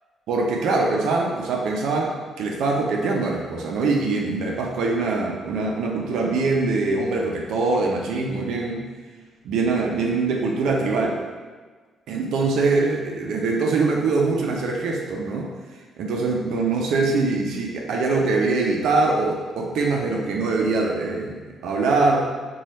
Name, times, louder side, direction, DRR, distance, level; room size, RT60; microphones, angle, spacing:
voice 1, 0.3-8.9 9.4-11.2 12.1-15.5 16.0-22.3, right 3 dB, 80° right, 0 dB, 0.4 m, -23 dB
3.1 x 2.3 x 4.1 m, 1.4 s
cardioid pair, 90°, 0 cm